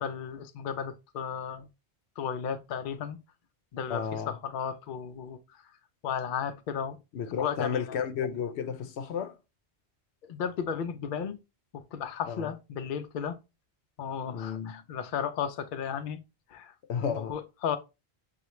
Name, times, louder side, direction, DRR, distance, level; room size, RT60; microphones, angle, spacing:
voice 1, 0.0-1.7 2.2-3.2 3.7-5.4 6.0-7.0 7.3-8.0 10.3-11.4 11.9-13.4 14.0-16.2 16.5-16.7 17.0-17.8, left 7 dB, 60° left, 0.7 m, -34 dB
voice 2, 3.9-4.3 7.1-9.3 12.3-12.5 14.3-14.7 16.9-17.3, left 7 dB, 85° left, 0.9 m, -32 dB
6.6 x 2.4 x 3.0 m
omnidirectional pair, 1.1 m